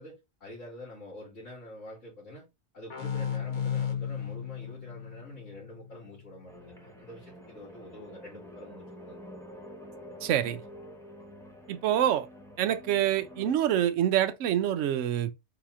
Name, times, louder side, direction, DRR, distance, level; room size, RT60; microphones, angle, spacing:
voice 1, 0.0-2.5 2.7-9.2, left 1 dB, 60° left, 3.0 m, -47 dB
sound 1, 2.9-6.3, left 8 dB, 45° left, 0.7 m, -34 dB
sound 2, 6.5-13.6, equal, 5° left, 0.7 m, -48 dB
voice 2, 10.2-10.6 11.7-12.3 12.6-15.3, right 11 dB, 70° right, 0.9 m, -26 dB
4.8 x 3.0 x 3.6 m
omnidirectional pair, 1.4 m